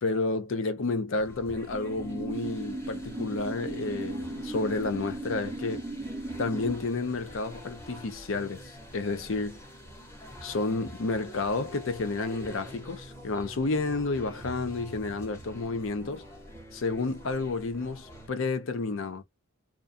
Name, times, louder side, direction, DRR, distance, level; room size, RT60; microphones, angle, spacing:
voice 1, 0.0-5.8 6.4-9.6 10.4-16.2 16.7-19.2, left 3 dB, 65° left, 0.6 m, -31 dB
sound 1, 1.1-18.3, equal, 15° left, 0.8 m, -46 dB
sound 2, 1.7-6.7, right 2 dB, 20° right, 0.4 m, -37 dB
2.4 x 2.3 x 2.5 m
head